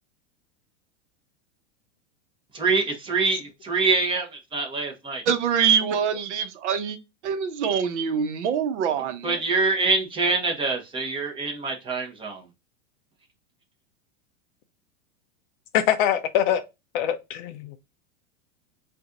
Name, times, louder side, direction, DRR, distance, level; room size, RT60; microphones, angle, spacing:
voice 1, 2.5-5.2 8.9-12.4, right 3 dB, 15° right, 0.9 m, -25 dB
voice 2, 5.3-7.0 7.2-9.3, right 7 dB, 70° right, 0.9 m, -24 dB
voice 3, 15.7-16.6 16.9-17.7, left 10 dB, 40° left, 0.4 m, -23 dB
4.0 x 2.5 x 3.8 m
supercardioid pair, 145°, 37 cm